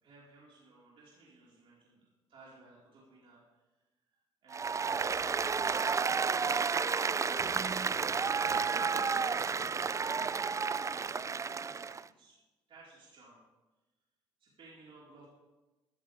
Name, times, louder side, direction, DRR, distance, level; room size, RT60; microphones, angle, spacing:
voice 1, 0.0-3.8 4.1-10.0 10.3-12.4 12.7-13.4 14.4-15.3, right 3 dB, 55° right, -6 dB, 4.7 m, -59 dB
Applause, 4.5-12.0, right 5 dB, 30° right, 0.4 m, -31 dB
14.5 x 14.0 x 3.6 m, 1.1 s
supercardioid pair, 60°, 11 cm